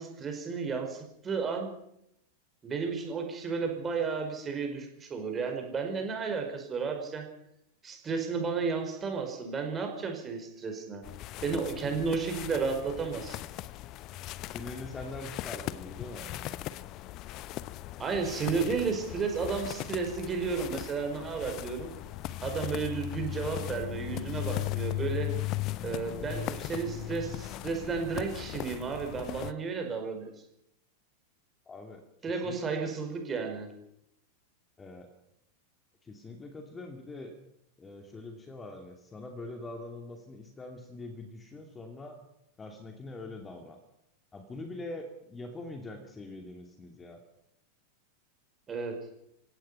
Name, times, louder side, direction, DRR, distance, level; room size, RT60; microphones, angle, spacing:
voice 1, 0.0-1.7 2.6-7.2 7.8-11.0 11.4-13.4 18.0-21.9 22.4-25.3 25.8-30.3 32.2-33.7 48.7-48.9, right 5 dB, 20° right, 4 dB, 5.1 m, -33 dB
sound 1, 11.0-29.5, left 15 dB, 40° left, 0.8 m, -38 dB
voice 2, 14.4-16.3 31.7-32.0 32.4-32.9 34.8-35.1 36.0-37.3 37.8-42.2 42.6-43.8 44.3-47.2, left 2 dB, 15° left, 4 dB, 2.6 m, -43 dB
27.5 x 17.0 x 5.8 m, 0.78 s
figure-of-eight pair, 90°, 0 cm